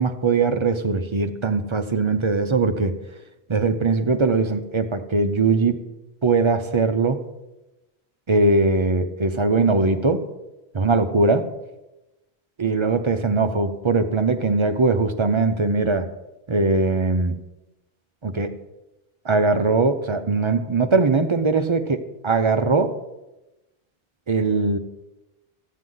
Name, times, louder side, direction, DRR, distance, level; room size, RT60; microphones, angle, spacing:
voice 1, 0.0-2.9 3.5-5.8 6.2-7.2 8.3-10.2 10.7-11.4 12.6-16.1 16.5-17.3 18.2-18.6 19.2-23.0 24.3-24.8, right 3 dB, 35° right, 7 dB, 0.5 m, -20 dB
14.0 x 7.8 x 3.8 m, 0.99 s
omnidirectional pair, 1.1 m